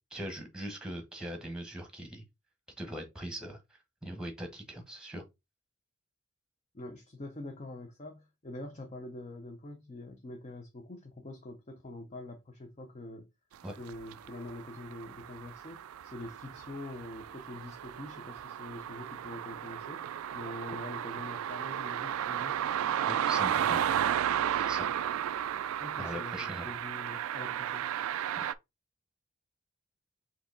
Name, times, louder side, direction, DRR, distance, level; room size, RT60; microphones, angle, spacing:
voice 1, 0.1-2.2 2.8-5.2 13.6-13.7 23.0-23.8 24.5-24.9 26.0-26.8 28.4-28.5, equal, 5° right, 1.0 m, -41 dB
voice 2, 6.7-13.3 13.8-20.1 20.3-22.6 25.8-27.9, left 2 dB, 30° left, 0.6 m, -45 dB
sound 1, 13.9-28.5, right 10 dB, 75° right, 0.3 m, -34 dB
4.6 x 2.8 x 3.8 m
head